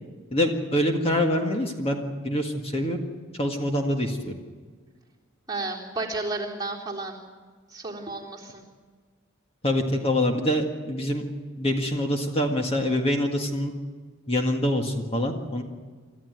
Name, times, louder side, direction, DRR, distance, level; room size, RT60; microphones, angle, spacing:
voice 1, 0.3-3.0 3.4-4.3 9.6-11.3 11.6-13.7 14.3-15.6, left 1 dB, 30° left, 3 dB, 1.8 m, -25 dB
voice 2, 5.5-7.2 7.7-8.6, right 3 dB, 20° right, -3 dB, 3.7 m, -32 dB
27.0 x 13.5 x 9.3 m, 1.5 s
head